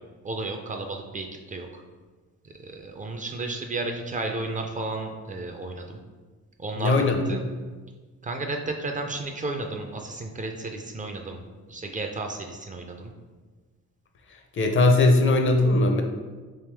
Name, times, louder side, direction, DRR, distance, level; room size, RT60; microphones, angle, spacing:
voice 1, 0.2-1.8 2.4-6.0 6.6-7.4 8.2-13.1, right 2 dB, 25° right, 3 dB, 0.4 m, -33 dB
voice 2, 6.8-7.4 14.5-16.0, left 2 dB, 40° left, 4 dB, 0.5 m, -20 dB
3.4 x 2.8 x 3.3 m, 1.4 s
cardioid pair, 90°, 30 cm